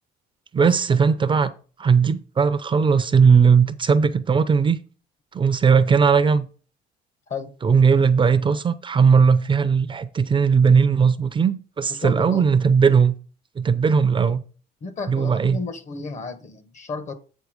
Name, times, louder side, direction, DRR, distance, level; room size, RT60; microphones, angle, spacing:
voice 1, 0.5-1.5 1.8-4.8 5.3-6.5 7.6-13.1 13.6-14.4 15.1-15.6, right 6 dB, 30° right, 0.6 m, -18 dB
voice 2, 11.9-12.5 14.8-17.1, left 4 dB, 45° left, 1.3 m, -33 dB
8.3 x 4.2 x 4.9 m
cardioid pair, 110°, 17 cm